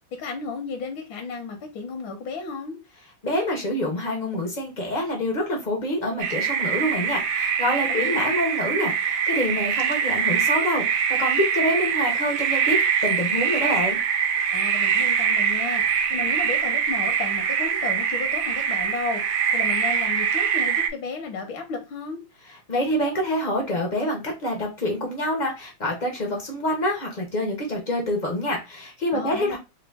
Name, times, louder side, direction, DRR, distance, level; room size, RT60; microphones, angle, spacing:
voice 1, 0.1-2.8 7.9-8.4 14.5-15.8 16.1-22.2 29.1-29.6, left 4 dB, 75° left, 1.5 m, -33 dB
voice 2, 3.2-14.0 22.7-29.6, left 1 dB, 55° left, 0.5 m, -26 dB
sound 1, 6.2-20.9, right 7 dB, 80° right, 1.3 m, -23 dB
3.9 x 2.2 x 3.4 m
omnidirectional pair, 2.1 m